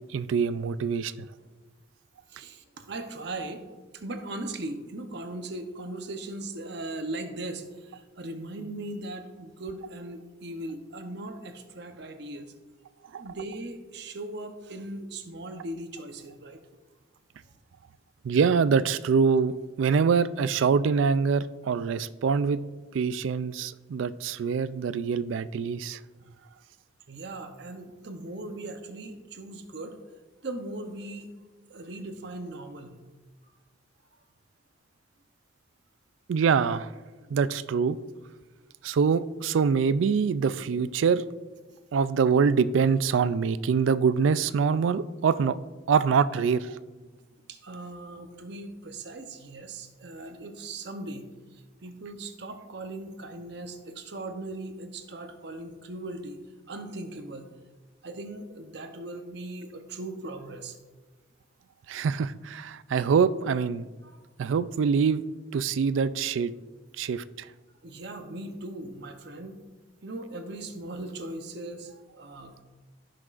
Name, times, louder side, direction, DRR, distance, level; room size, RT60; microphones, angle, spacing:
voice 1, 0.1-1.1 13.1-13.2 18.2-22.6 22.9-26.0 36.3-36.9 37.3-38.0 38.8-41.2 41.9-45.5 45.9-46.8 61.9-63.9 64.4-65.2 65.5-66.5 67.0-67.5, right 6 dB, 80° right, 15 dB, 0.3 m, -24 dB
voice 2, 2.3-12.5 13.2-16.6 27.1-30.0 30.4-31.3 31.7-33.0 37.2-37.3 47.5-56.4 56.7-57.5 58.0-60.8 64.0-64.2 67.8-69.6 70.0-72.6, right 2 dB, 60° right, 6 dB, 0.8 m, -39 dB
15.5 x 6.0 x 2.5 m, 1.3 s
head